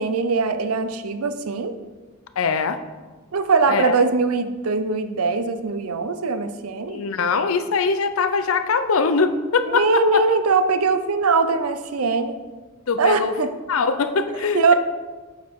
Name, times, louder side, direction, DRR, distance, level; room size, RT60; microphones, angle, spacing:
voice 1, 0.0-1.7 3.3-7.0 9.7-12.4 13.0-13.5 14.5-14.7, right 4 dB, 85° right, 9 dB, 0.6 m, -21 dB
voice 2, 2.4-2.8 3.7-3.9 6.9-10.2 12.9-13.3 13.7-14.7, left 4 dB, 70° left, 9 dB, 0.6 m, -22 dB
7.9 x 5.2 x 4.6 m, 1.3 s
head